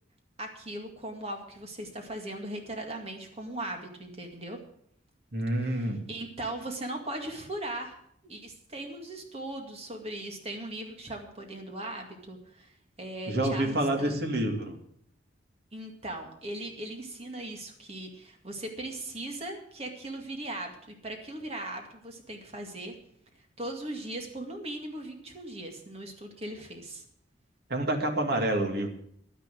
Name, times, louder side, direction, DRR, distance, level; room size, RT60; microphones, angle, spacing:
voice 1, 0.4-4.6 5.6-8.0 8.2-14.2 15.7-22.9 23.6-27.1, right 1 dB, 35° right, 3 dB, 2.1 m, -39 dB
voice 2, 5.3-6.1 13.3-14.8 27.7-28.9, right 1 dB, 55° right, 3 dB, 2.2 m, -28 dB
11.5 x 10.0 x 7.6 m, 0.67 s
head